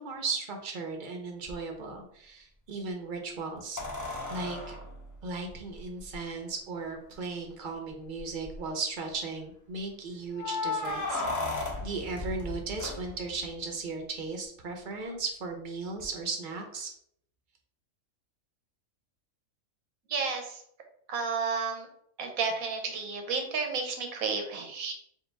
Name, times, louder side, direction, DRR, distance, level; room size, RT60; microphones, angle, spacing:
voice 1, 0.0-3.8 4.3-4.8 5.2-16.9, right 4 dB, 45° right, 2 dB, 0.7 m, -36 dB
sound 1, 1.5-1.6 3.8-6.2 7.1-7.2 7.5-7.6 8.2-8.6 10.3-13.5 16.0-16.1, left 2 dB, 25° left, 0.4 m, -35 dB
voice 2, 20.1-20.6 21.1-21.9 22.2-24.9, right 5 dB, 85° right, 4 dB, 1.3 m, -31 dB
4.7 x 2.4 x 3.3 m, 0.67 s
omnidirectional pair, 1.4 m